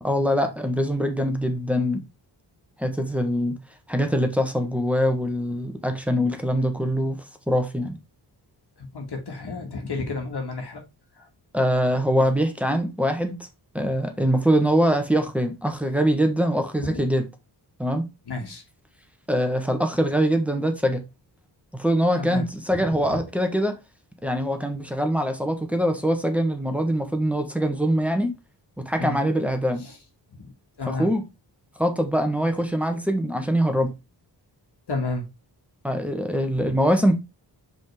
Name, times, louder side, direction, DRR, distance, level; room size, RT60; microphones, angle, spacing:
voice 1, 0.0-2.0 2.8-3.6 3.9-8.0 11.5-13.3 13.7-17.3 17.8-18.0 19.3-21.0 21.7-23.8 24.2-28.3 28.8-29.8 30.9-31.2 31.8-33.9 35.8-37.1, equal, 5° right, 1.2 m, -23 dB
voice 2, 8.8-10.8 11.2-11.3 16.8-17.0 18.3-18.6 22.2-23.2 29.0-29.2 29.8-30.0 30.4-30.5 30.8-31.1 34.9-35.3, left 3 dB, 70° left, 1.8 m, -31 dB
5.1 x 4.0 x 4.8 m
wide cardioid pair, 100°, 42 cm